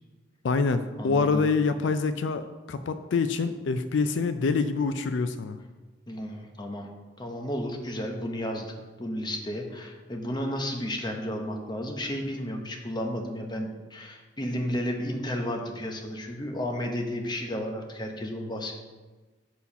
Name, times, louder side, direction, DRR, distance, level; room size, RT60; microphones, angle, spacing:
voice 1, 0.4-5.6, left 4 dB, 80° left, 10 dB, 0.4 m, -26 dB
voice 2, 1.0-1.5 6.1-6.9 7.2-18.7, equal, 25° left, 3 dB, 0.9 m, -33 dB
7.0 x 4.6 x 5.7 m, 1.3 s
head